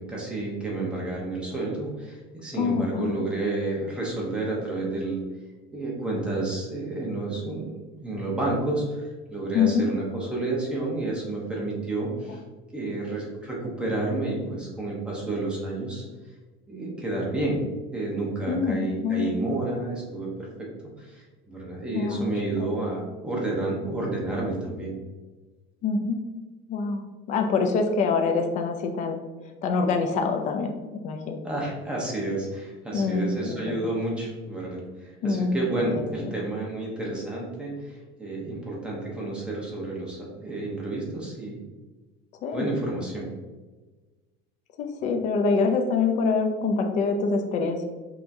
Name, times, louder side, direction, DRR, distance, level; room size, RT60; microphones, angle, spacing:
voice 1, 0.0-5.2 5.7-12.4 12.7-16.0 16.7-17.6 17.9-20.7 21.0-25.0 31.4-41.6 42.5-43.3, right 2 dB, 5° right, -4 dB, 0.8 m, -30 dB
voice 2, 2.6-3.2 9.5-9.8 18.5-19.3 21.9-22.3 22.6-22.7 25.8-26.2 26.7-29.2 29.6-30.7 31.0-31.4 32.9-33.8 35.2-36.0 42.4-42.6 44.8-47.9, left 4 dB, 35° left, 4 dB, 0.4 m, -25 dB
5.6 x 2.9 x 2.6 m, 1.3 s
cardioid pair, 170°, 21 cm